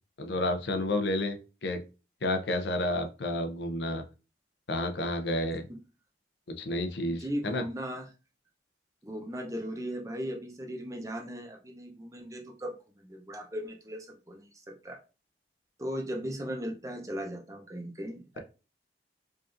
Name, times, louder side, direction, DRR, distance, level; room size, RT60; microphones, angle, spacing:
voice 1, 0.2-1.8 2.2-4.0 4.7-5.7 6.6-7.6, left 1 dB, 75° left, 6 dB, 0.6 m, -30 dB
voice 2, 7.1-8.1 9.0-15.0 15.8-18.4, equal, 20° right, 2 dB, 0.6 m, -37 dB
4.9 x 2.5 x 2.5 m, 0.32 s
head